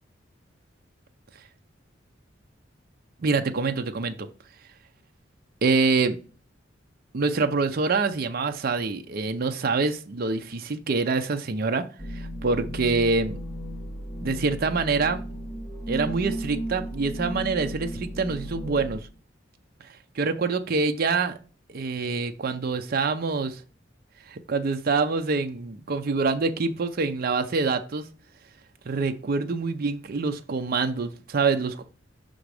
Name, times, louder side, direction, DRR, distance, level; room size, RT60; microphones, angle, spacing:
voice 1, 3.2-4.3 5.6-6.2 7.1-13.4 14.2-15.2 15.9-19.1 19.8-21.4 21.7-23.6 24.2-28.1 28.9-31.8, right 4 dB, 50° right, 0.5 m, -26 dB
sound 1, 12.0-19.0, equal, 20° left, 1.3 m, -35 dB
5.9 x 3.8 x 4.8 m
head